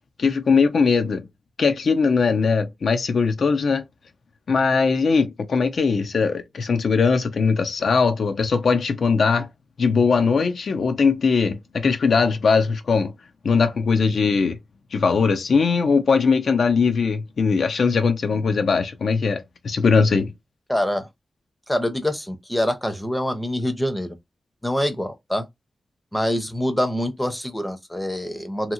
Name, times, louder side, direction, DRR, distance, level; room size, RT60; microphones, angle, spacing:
voice 1, 0.2-1.2 1.6-3.8 4.5-9.5 9.8-13.1 13.4-14.6 14.9-20.3, left 5 dB, 70° left, 0.5 m, -20 dB
voice 2, 20.7-21.1 21.7-24.2 24.6-25.4 26.1-28.7, left 1 dB, 10° left, 0.6 m, -25 dB
2.8 x 2.7 x 2.5 m
wide cardioid pair, 115°, 0 cm